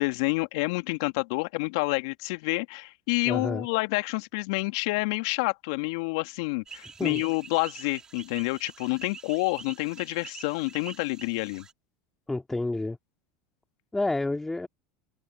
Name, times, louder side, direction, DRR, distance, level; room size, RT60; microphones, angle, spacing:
voice 1, 0.0-11.7, left 26 dB, 65° left, 2.3 m, -28 dB
voice 2, 3.3-3.7 7.0-7.2 12.3-13.0 13.9-14.7, left 2 dB, 10° left, 2.9 m, -29 dB
sound 1, 6.7-11.7, right 6 dB, 25° right, 3.4 m, -46 dB
hypercardioid pair, 80°, 3 cm